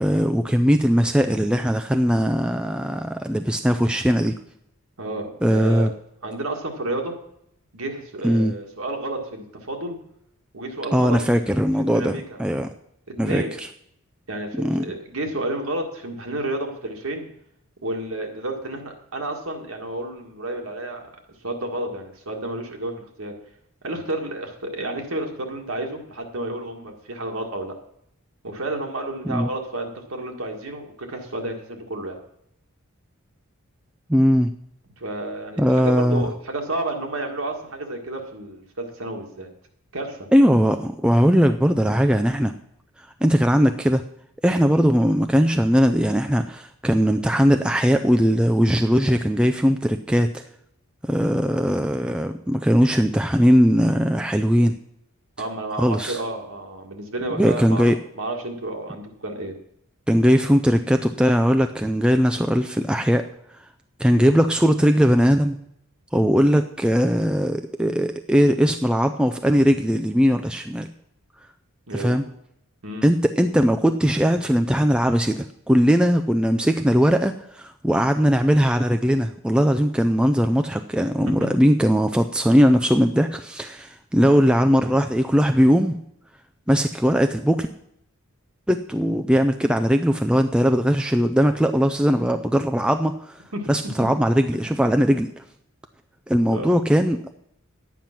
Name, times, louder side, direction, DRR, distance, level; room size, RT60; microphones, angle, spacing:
voice 1, 0.0-4.3 5.4-5.9 8.2-8.5 10.9-12.7 13.2-13.7 14.6-14.8 29.3-29.5 34.1-34.5 35.6-36.3 40.3-42.5 43.0-44.0 44.4-50.4 51.0-54.8 55.8-56.2 57.4-58.0 60.1-63.3 64.0-65.6 66.1-70.9 71.9-72.2 73.0-86.0 86.7-87.7 88.7-93.4 93.7-95.3 96.3-97.2, equal, 5° right, 6 dB, 0.3 m, -19 dB
voice 2, 5.0-5.9 6.2-7.1 7.7-10.0 10.5-11.2 11.9-12.4 13.2-13.6 14.3-17.3 17.8-21.1 21.4-23.3 23.8-27.7 28.4-32.2 35.0-39.5 39.9-40.3 55.4-59.5 71.9-72.2 72.8-73.1 81.2-81.5 93.5-93.7 94.0-94.1 96.4-96.7, right 2 dB, 75° right, 2 dB, 1.8 m, -31 dB
10.5 x 9.2 x 5.9 m, 0.74 s
head